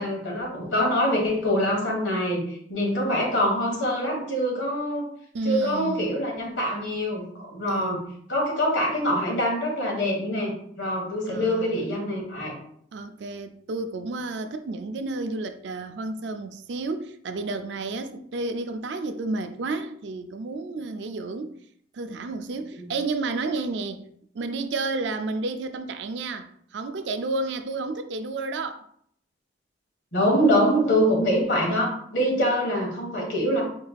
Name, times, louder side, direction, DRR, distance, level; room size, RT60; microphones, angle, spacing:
voice 1, 0.0-5.1 5.4-8.0 8.3-12.5 22.8-22.9 30.1-33.6, equal, 80° left, 1.5 m, -24 dB
voice 2, 5.3-6.1 7.7-8.0 11.3-11.8 12.9-21.6 21.9-24.0 24.3-28.8, right 3 dB, 70° right, 0.4 m, -31 dB
4.4 x 3.3 x 2.4 m
head